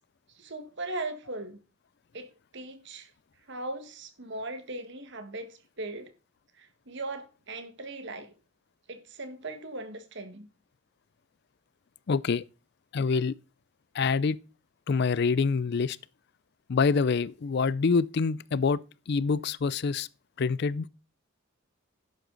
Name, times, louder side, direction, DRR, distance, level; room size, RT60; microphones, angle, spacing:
voice 1, 0.3-1.6 2.1-2.3 2.5-3.1 3.5-6.1 6.6-8.3 8.9-10.5, right 2 dB, 60° right, 1.6 m, -39 dB
voice 2, 12.1-12.4 12.9-13.3 13.9-14.4 14.9-16.0 16.7-18.8 19.1-20.1 20.4-20.9, left 5 dB, 55° left, 0.4 m, -26 dB
11.0 x 8.1 x 3.9 m
head